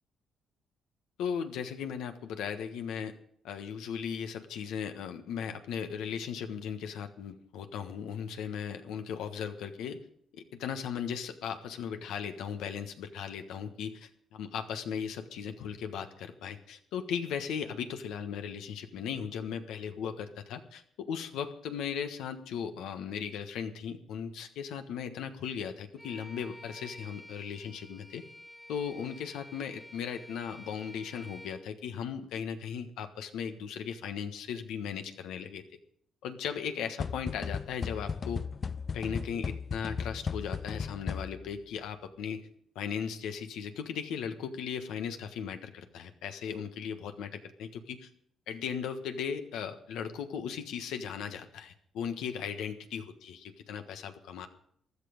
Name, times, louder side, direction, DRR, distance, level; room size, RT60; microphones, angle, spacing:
voice 1, 1.2-3.1 3.4-10.0 10.3-28.2 28.7-35.6 36.2-38.4 38.9-42.5 42.7-48.1 48.5-54.5, left 7 dB, 90° left, 7 dB, 1.3 m, -37 dB
Bowed string instrument, 26.0-31.7, left 1 dB, 10° left, 1.8 m, -50 dB
sound 1, 37.0-41.6, left 5 dB, 40° left, 0.5 m, -36 dB
15.0 x 11.5 x 5.2 m, 0.66 s
cardioid pair, 90°, 0 cm